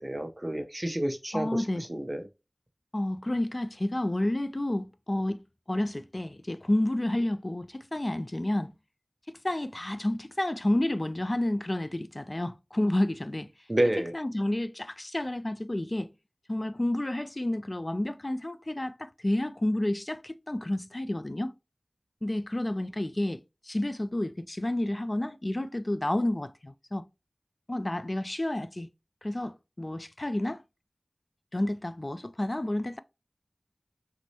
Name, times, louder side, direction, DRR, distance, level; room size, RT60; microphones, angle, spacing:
voice 1, 0.0-1.6 1.9-2.2 13.7-14.1, right 1 dB, 35° right, 0.7 m, -29 dB
voice 2, 1.3-1.9 2.9-5.4 5.7-8.7 9.3-13.5 14.1-16.1 16.5-21.5 22.2-27.1 27.7-28.9 29.2-30.6 31.5-33.0, left 1 dB, 35° left, 0.3 m, -30 dB
6.0 x 2.1 x 2.8 m
wide cardioid pair, 45°, 0 cm